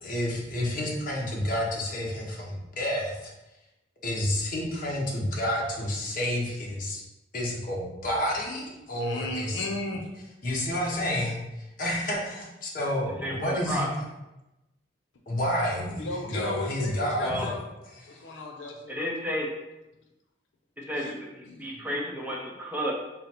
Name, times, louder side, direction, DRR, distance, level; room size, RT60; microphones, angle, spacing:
voice 1, 0.0-3.3 4.0-7.0 7.3-9.6 10.4-13.9 15.3-17.5, left 1 dB, 50° left, -2 dB, 0.9 m, -30 dB
voice 2, 9.0-10.1 15.9-17.7 18.1-19.0 20.9-21.2 21.4-21.8, left 2 dB, 90° left, 2 dB, 0.6 m, -35 dB
voice 3, 13.2-13.9 17.2-17.5 18.9-19.5 20.8-21.1 21.6-22.9, equal, 10° right, -3 dB, 0.5 m, -31 dB
3.8 x 2.0 x 4.3 m, 0.97 s
head